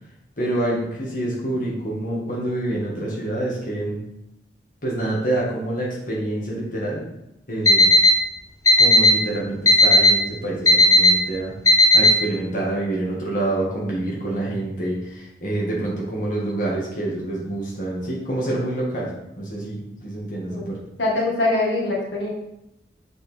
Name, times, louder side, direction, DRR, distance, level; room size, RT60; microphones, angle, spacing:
voice 1, 0.4-4.0 4.8-7.1 7.5-7.9 8.8-11.5 11.9-20.8, right 1 dB, 50° left, -4 dB, 1.7 m, -27 dB
Alarm, 7.7-8.1 8.7-9.1 9.7-10.1 10.7-11.1 11.7-12.1, left 2 dB, 20° left, 0.6 m, -12 dB
voice 2, 20.6-22.3, left 2 dB, 90° left, -3 dB, 1.7 m, -23 dB
7.0 x 4.5 x 3.5 m, 0.85 s
head